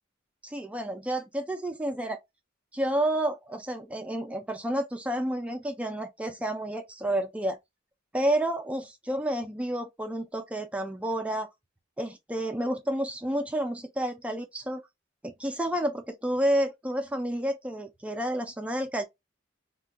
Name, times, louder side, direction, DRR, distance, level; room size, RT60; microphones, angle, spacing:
voice 1, 0.4-2.2 2.7-7.6 8.1-11.5 12.0-14.8 15.2-19.0, right 1 dB, 5° right, 0.3 m, -30 dB
2.3 x 2.2 x 3.5 m
head